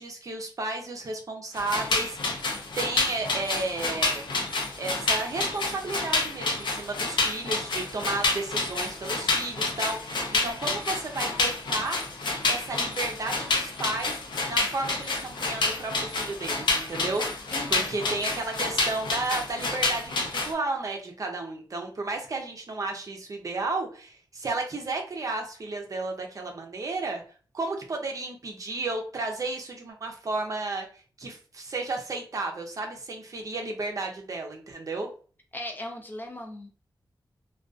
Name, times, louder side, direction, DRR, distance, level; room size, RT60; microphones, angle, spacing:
voice 1, 0.0-2.4 2.8-4.3 4.8-12.0 12.5-14.2 14.5-17.4 17.7-27.2 27.5-30.9 31.2-35.1, right 3 dB, 45° right, 2 dB, 0.5 m, -33 dB
sound 1, 1.5-20.5, left 3 dB, 75° left, 0.6 m, -29 dB
voice 2, 17.5-18.2 35.5-36.7, left 1 dB, 25° left, 3 dB, 0.5 m, -38 dB
2.5 x 2.3 x 2.3 m, 0.40 s
wide cardioid pair, 165°, 8 cm